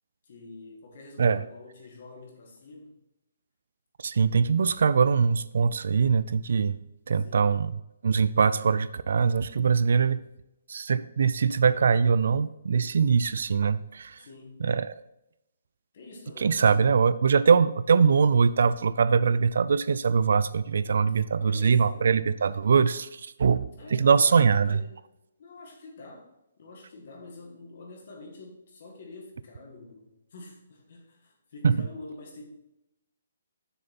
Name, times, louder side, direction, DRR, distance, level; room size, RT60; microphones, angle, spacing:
voice 1, 0.2-2.9 7.2-7.6 14.2-14.7 15.9-16.7 21.4-22.1 23.7-25.0 25.4-26.3 26.6-32.5, left 2 dB, 40° left, 1 dB, 1.8 m, -46 dB
voice 2, 4.0-6.8 7.1-7.8 8.0-10.2 10.7-14.2 14.6-14.9 16.4-24.8 31.6-31.9, right 6 dB, 55° right, 16 dB, 0.3 m, -22 dB
6.8 x 6.7 x 4.2 m, 0.87 s
hypercardioid pair, 180°, 0 cm